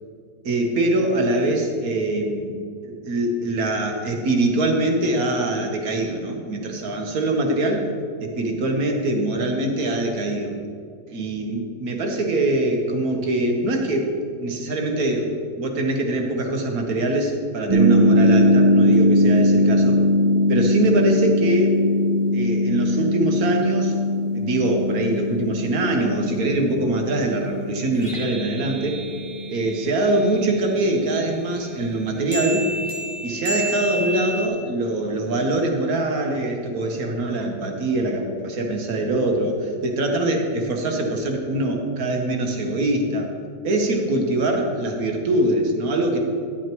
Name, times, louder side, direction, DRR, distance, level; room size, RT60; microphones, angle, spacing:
voice 1, 0.4-2.5 2.8-7.9 8.2-10.5 11.1-14.1 14.4-20.0 20.5-21.7 22.3-23.9 24.3-29.0 29.5-32.7 33.2-43.3 43.6-46.2, right 2 dB, 60° right, 2 dB, 1.5 m, -23 dB
sound 1, 17.7-30.7 32.3-34.5, left 1 dB, 15° right, 1.2 m, -21 dB
11.0 x 10.5 x 3.0 m, 2.2 s
omnidirectional pair, 1.8 m